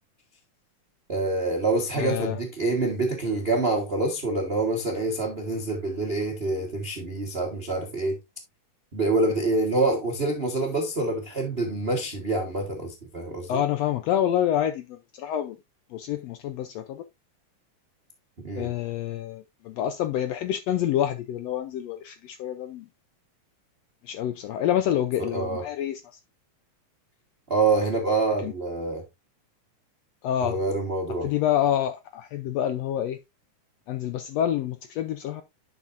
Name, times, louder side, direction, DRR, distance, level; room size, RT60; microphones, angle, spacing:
voice 1, 1.1-8.2 8.9-13.6 18.4-18.7 25.3-25.6 27.5-29.0 30.4-31.3, right 2 dB, 65° right, 0.6 m, -26 dB
voice 2, 2.0-2.4 13.5-15.6 15.9-17.0 18.5-22.9 24.0-26.2 28.4-28.5 30.2-30.6 31.2-33.2 33.9-35.4, left 10 dB, 80° left, 1.5 m, -27 dB
10.5 x 5.9 x 2.5 m
omnidirectional pair, 3.5 m